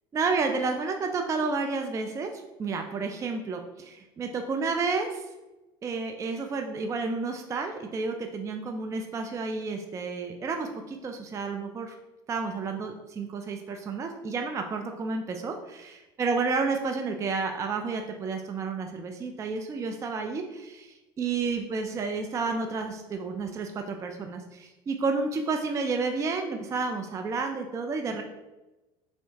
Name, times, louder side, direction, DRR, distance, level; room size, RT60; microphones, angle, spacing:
voice 1, 0.1-5.2 5.8-11.9 12.3-28.2, right 4 dB, 25° right, 4 dB, 0.3 m, -31 dB
3.1 x 2.8 x 2.7 m, 1.1 s
supercardioid pair, 90°, 13 cm